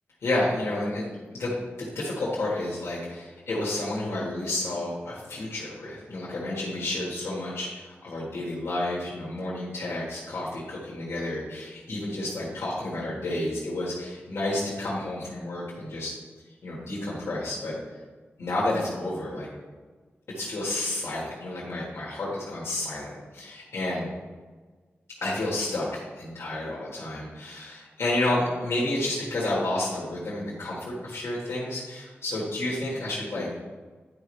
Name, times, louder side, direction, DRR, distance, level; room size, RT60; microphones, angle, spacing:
voice 1, 0.2-16.2 16.6-17.8 18.4-19.5 20.3-24.1 25.2-33.5, left 1 dB, 75° left, -7 dB, 1.7 m, -30 dB
11.0 x 5.2 x 3.3 m, 1.4 s
wide cardioid pair, 150°, 4 cm